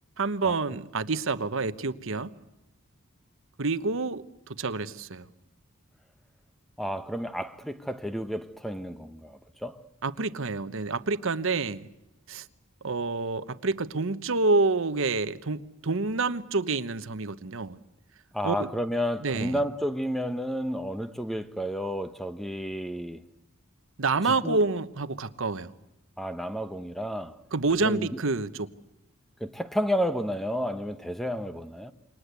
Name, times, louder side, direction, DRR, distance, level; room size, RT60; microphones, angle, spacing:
voice 1, 0.2-2.3 3.6-5.3 10.0-11.9 12.3-12.5 12.8-17.8 18.4-18.7 19.2-19.6 24.0-25.7 27.5-28.7, right 3 dB, 65° right, 1.1 m, -28 dB
voice 2, 6.8-9.8 18.3-23.2 24.2-24.6 26.2-27.4 27.8-28.1 29.4-31.9, equal, ahead, 1.0 m, -31 dB
28.0 x 24.0 x 8.2 m
head